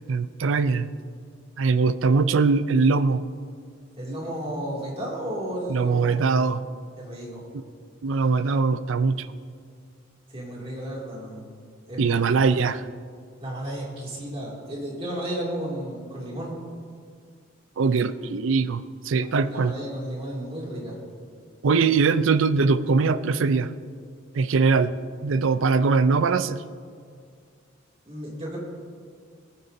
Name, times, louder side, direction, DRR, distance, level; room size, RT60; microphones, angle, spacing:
voice 1, 0.1-0.9 1.6-3.2 5.7-6.6 8.0-9.3 12.0-12.8 17.8-19.7 21.6-23.7 24.3-25.0 25.2-26.6, right 4 dB, 80° right, 14 dB, 0.5 m, -21 dB
voice 2, 4.0-6.3 7.0-7.5 10.3-11.5 11.9-12.2 12.5-12.6 13.4-16.5 19.2-21.0 28.1-28.6, right 1 dB, 30° right, -4 dB, 2.5 m, -33 dB
19.5 x 9.2 x 2.7 m, 2.1 s
head